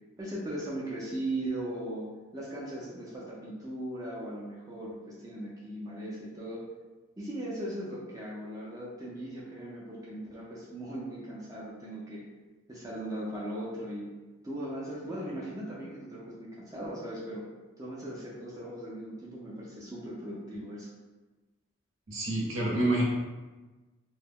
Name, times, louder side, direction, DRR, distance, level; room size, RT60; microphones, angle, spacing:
voice 1, 0.2-2.1 2.3-6.6 7.2-12.2 12.7-14.1 14.4-17.4 17.8-20.9, right 1 dB, 15° right, -7 dB, 0.4 m, -38 dB
voice 2, 22.1-23.0, right 1 dB, 80° right, -3 dB, 0.7 m, -27 dB
2.2 x 2.0 x 3.5 m, 1.2 s
head